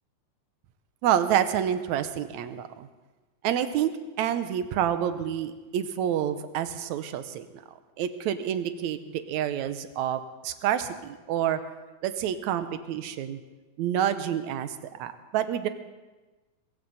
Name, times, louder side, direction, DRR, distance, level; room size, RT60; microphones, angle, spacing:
voice 1, 1.0-2.9 3.4-3.9 4.2-7.6 8.0-11.6 12.0-13.4 13.8-15.7, right 10 dB, 75° right, 10 dB, 2.1 m, -28 dB
22.0 x 15.0 x 4.1 m, 1.2 s
omnidirectional pair, 3.5 m